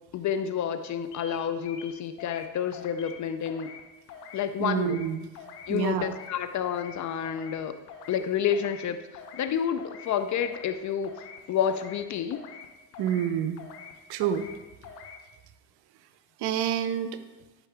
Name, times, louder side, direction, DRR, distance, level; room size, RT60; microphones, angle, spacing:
voice 1, 0.1-3.7 4.3-5.0 5.7-7.7 8.1-11.2 11.5-12.5, left 8 dB, 35° left, 10 dB, 0.6 m, -29 dB
sound 1, 1.1-1.4 1.6-2.5 2.7-3.2 3.5-3.8 4.1-4.4 4.7-5.1 5.3-5.7 6.0-6.3 6.6-7.0 7.2-7.6 7.9-8.2 8.5-8.9 9.1-9.5 9.8-10.1 10.4-10.8 11.0-11.4 11.7-12.0 12.3-12.7 12.9-13.3 13.6-13.9 14.2-14.6 14.8-15.2, left 6 dB, 75° left, 1.2 m, -45 dB
voice 2, 4.6-5.3 5.7-6.1 13.0-13.6 14.1-14.4 16.4-17.1, right 9 dB, 50° right, 11 dB, 0.8 m, -27 dB
13.0 x 5.7 x 3.5 m, 1.1 s
figure-of-eight pair, 60°, 48 cm